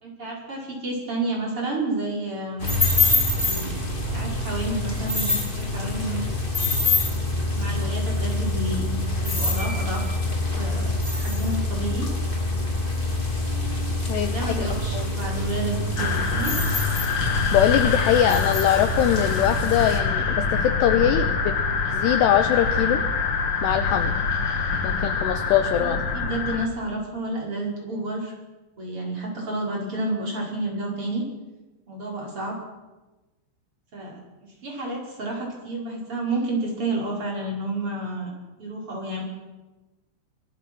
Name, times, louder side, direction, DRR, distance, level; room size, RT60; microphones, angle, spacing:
voice 1, 0.0-2.7 3.3-3.8 4.1-6.2 7.5-10.1 10.5-12.1 14.1-16.6 25.8-28.3 28.8-31.2 31.9-32.6 33.9-38.3 38.6-39.2, right 2 dB, 25° right, -2 dB, 5.9 m, -30 dB
sound 1, 2.6-20.0, left 2 dB, 15° left, 2.2 m, -25 dB
voice 2, 14.6-15.1 17.5-21.5 21.9-23.0 23.6-24.2 24.8-26.0, left 10 dB, 75° left, 10 dB, 2.6 m, -22 dB
sound 2, 16.0-26.7, left 4 dB, 55° left, 1.5 m, -25 dB
24.0 x 24.0 x 6.3 m, 1.1 s
omnidirectional pair, 6.0 m